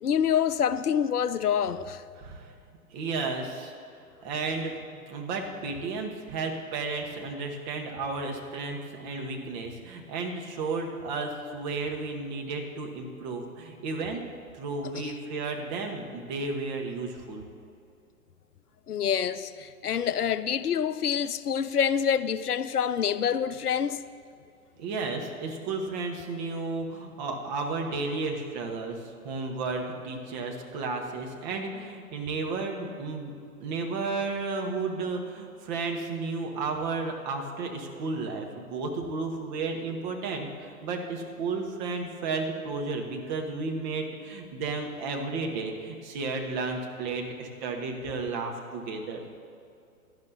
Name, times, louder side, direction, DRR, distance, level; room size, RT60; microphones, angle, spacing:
voice 1, 0.0-2.0 18.9-24.0, left 8 dB, 75° left, 0.6 m, -26 dB
voice 2, 2.2-2.5 2.9-3.7 4.2-14.2 14.5-17.4 24.8-33.3 33.6-49.2, right 3 dB, 30° right, 1.3 m, -33 dB
17.0 x 12.0 x 2.8 m
figure-of-eight pair, 120°, 45 cm